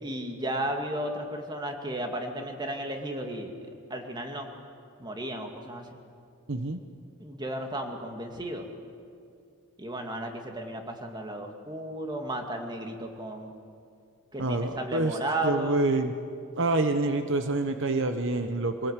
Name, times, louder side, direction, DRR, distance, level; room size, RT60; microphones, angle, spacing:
voice 1, 0.0-4.5 5.0-5.8 7.2-8.7 9.8-13.5 14.3-15.8, right 1 dB, 20° right, 3 dB, 2.2 m, -34 dB
voice 2, 6.5-6.8 14.4-15.2 15.4-16.1 16.6-18.9, right 2 dB, 60° right, 7 dB, 1.1 m, -27 dB
25.5 x 18.0 x 8.2 m, 2.5 s
head